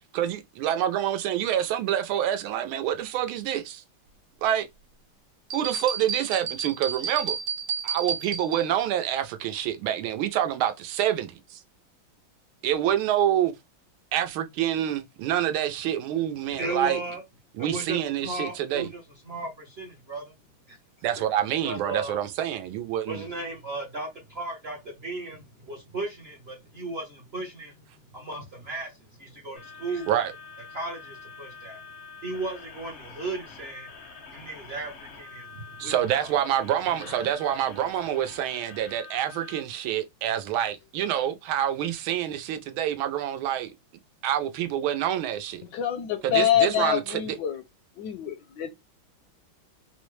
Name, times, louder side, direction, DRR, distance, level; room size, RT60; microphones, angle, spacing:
voice 1, 0.1-3.8 4.4-4.7 5.5-7.4 7.8-11.6 12.6-13.5 14.1-17.0 17.6-18.9 21.0-23.2 30.1-30.3 35.8-43.7 44.2-45.6 46.2-47.3, right 11 dB, 85° right, 1.4 m, -27 dB
sound 1, 5.5-8.9, right 7 dB, 70° right, 1.0 m, -32 dB
voice 2, 16.4-17.2 17.6-19.0 19.3-20.3 20.7-20.8 21.6-22.2 23.1-27.7 28.1-28.9 29.2-30.1 30.7-31.8 32.2-33.9 34.3-36.3, right 2 dB, 50° right, 0.7 m, -35 dB
sound 2, 29.6-39.6, left 5 dB, 60° left, 0.7 m, -46 dB
voice 3, 45.7-47.6 48.0-48.7, left 10 dB, 75° left, 1.1 m, -26 dB
4.2 x 2.1 x 3.1 m
omnidirectional pair, 2.2 m